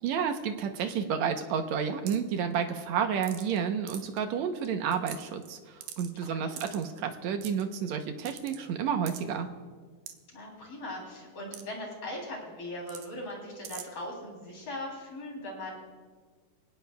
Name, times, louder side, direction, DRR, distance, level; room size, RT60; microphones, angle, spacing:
voice 1, 0.0-9.5, right 7 dB, 70° right, 6 dB, 1.9 m, -31 dB
sound 1, 2.1-2.3 3.2-3.6 3.9-4.2 4.6-4.7 4.9-5.5 5.8-6.1 6.6-6.9 7.4-7.6 8.3-8.6 9.1-9.2 10.1-10.2 11.5-11.6 11.9-12.0 12.9-13.1 13.6-13.8, right 10 dB, 90° right, 2.6 m, -43 dB
voice 2, 6.2-6.6 10.3-15.8, left 1 dB, 45° left, -1 dB, 4.3 m, -40 dB
25.5 x 18.0 x 2.3 m, 1.5 s
omnidirectional pair, 3.9 m